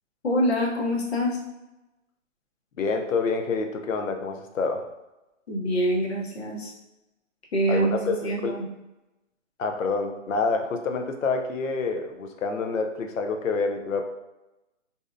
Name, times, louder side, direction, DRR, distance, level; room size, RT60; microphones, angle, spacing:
voice 1, 0.2-1.4 5.5-6.7 7.5-8.7, equal, 55° left, -3 dB, 0.7 m, -25 dB
voice 2, 2.8-4.9 7.7-8.5 9.6-14.0, left 4 dB, 90° left, 4 dB, 0.5 m, -27 dB
2.7 x 2.1 x 2.4 m, 0.99 s
hypercardioid pair, 165°, 39 cm